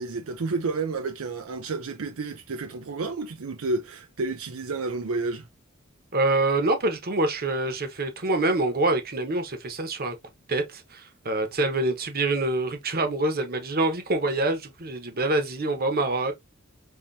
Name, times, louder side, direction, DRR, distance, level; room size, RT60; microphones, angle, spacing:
voice 1, 0.0-5.5, right 3 dB, 75° right, 0.6 m, -30 dB
voice 2, 6.1-10.2 10.5-16.3, right 2 dB, 45° right, 1.1 m, -26 dB
5.6 x 2.9 x 2.7 m
head